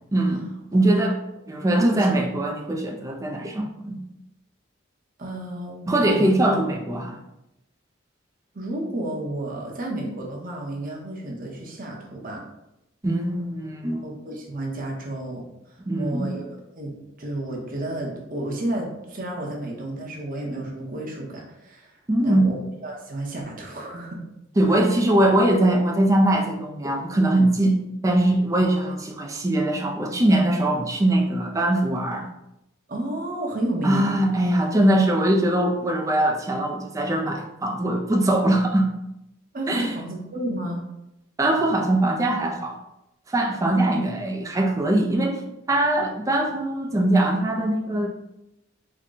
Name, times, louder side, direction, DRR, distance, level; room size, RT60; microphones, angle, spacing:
voice 1, 0.1-1.2 1.5-4.0 5.9-7.2 13.0-14.0 15.8-16.4 22.1-22.5 24.6-27.8 28.0-32.3 33.8-38.9 39.7-40.0 41.4-42.8 43.3-45.4 45.7-48.1, right 1 dB, 15° right, 2 dB, 0.4 m, -21 dB
voice 2, 1.7-2.2 5.2-6.4 8.5-12.4 14.0-15.4 16.0-16.5 16.7-16.9 17.2-21.9 22.2-24.2 28.8-29.0 32.9-34.0 39.5-40.8, right 1 dB, 45° right, -1 dB, 0.8 m, -31 dB
3.6 x 2.2 x 3.8 m, 0.87 s
head